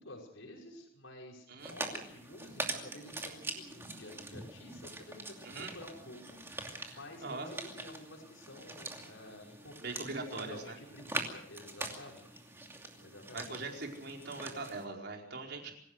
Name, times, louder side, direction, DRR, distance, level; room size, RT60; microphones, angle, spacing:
voice 1, 0.0-5.5 5.7-12.4 13.0-13.5, left 1 dB, 80° left, 0 dB, 5.6 m, -51 dB
sound 1, 1.6-14.9, right 2 dB, 10° right, 2.6 m, -43 dB
voice 2, 6.8-7.5 9.8-10.8 13.3-15.7, right 3 dB, 55° right, 1 dB, 4.6 m, -41 dB
26.0 x 16.5 x 6.5 m, 0.71 s
head